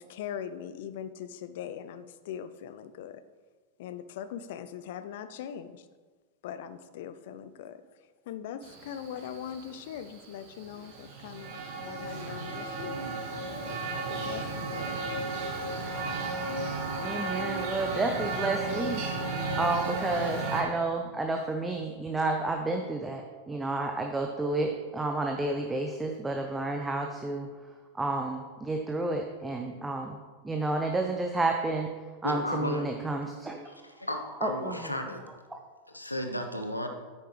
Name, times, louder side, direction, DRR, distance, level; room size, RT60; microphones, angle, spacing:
voice 1, 0.0-3.2 3.8-5.9 6.4-13.0 13.7-15.0, left 9 dB, 55° left, 12 dB, 0.5 m, -41 dB
Male speech man speaking, 8.6-20.6, right 3 dB, 45° right, 1.7 m, -34 dB
voice 2, 17.0-27.5 27.9-30.2 30.4-31.9 32.2-33.7 34.4-35.0 35.5-35.6, right 2 dB, 10° right, 3 dB, 0.7 m, -31 dB
voice 3, 32.2-32.8 33.7-35.2 35.9-36.9, left 1 dB, 85° left, 5 dB, 0.9 m, -34 dB
9.1 x 8.7 x 3.3 m, 1.4 s
figure-of-eight pair, 90°, 0 cm